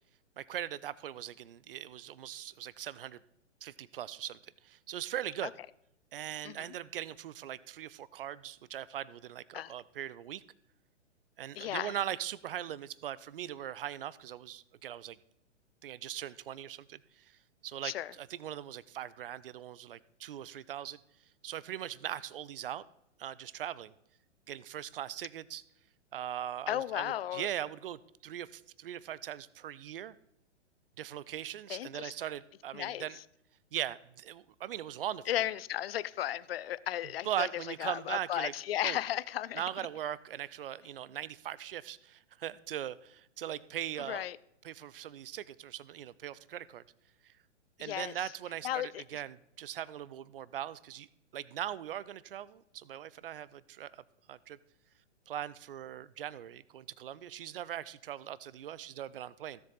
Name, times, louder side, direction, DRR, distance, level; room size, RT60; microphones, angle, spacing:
voice 1, 0.4-3.2 3.6-5.5 6.1-10.4 11.4-15.2 15.8-17.4 17.6-21.0 21.4-22.9 23.2-23.9 24.5-25.6 26.1-30.2 31.0-33.2 33.7-35.2 37.2-38.5 38.8-39.0 39.5-44.2 44.6-46.8 47.2-47.3 47.8-51.1 51.3-54.0 54.3-54.6 55.3-59.6, right 11 dB, 50° right, 0.6 m, -40 dB
voice 2, 11.6-12.0 17.8-18.1 26.7-27.5 31.7-32.1 32.7-33.2 35.3-37.5 37.8-39.6 44.1-44.4 47.8-48.3 48.6-49.2, left 12 dB, 55° left, 0.5 m, -35 dB
16.0 x 7.3 x 4.0 m
figure-of-eight pair, 115°, 36 cm